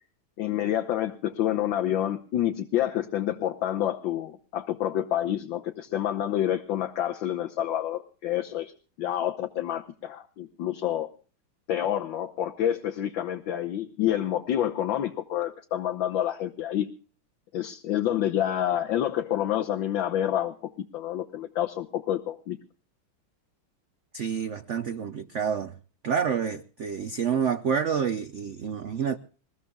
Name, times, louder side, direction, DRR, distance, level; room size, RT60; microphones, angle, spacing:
voice 1, 0.4-11.1 11.7-16.9 17.5-22.6, left 11 dB, 70° left, 1.6 m, -28 dB
voice 2, 24.1-25.7 26.0-29.2, right 7 dB, 90° right, 0.6 m, -28 dB
26.5 x 15.0 x 2.4 m
omnidirectional pair, 2.3 m